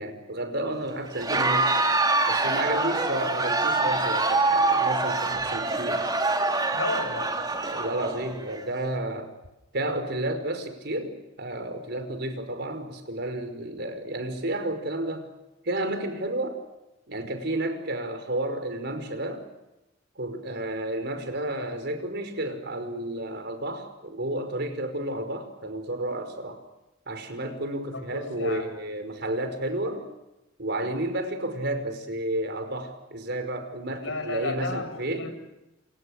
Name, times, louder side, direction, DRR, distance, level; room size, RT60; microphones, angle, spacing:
voice 1, 0.0-1.7 2.3-6.1 7.7-9.3 9.7-15.3 15.6-16.6 17.1-19.5 20.2-26.6 27.1-30.1 30.6-35.3, right 1 dB, 60° right, 8 dB, 5.3 m, -31 dB
Crowd, 1.1-8.6, right 3 dB, 20° right, 3.4 m, -25 dB
voice 2, 6.7-7.4 27.9-28.7 34.0-35.5, left 3 dB, 80° left, 8 dB, 5.9 m, -33 dB
29.5 x 27.0 x 6.6 m, 0.95 s
head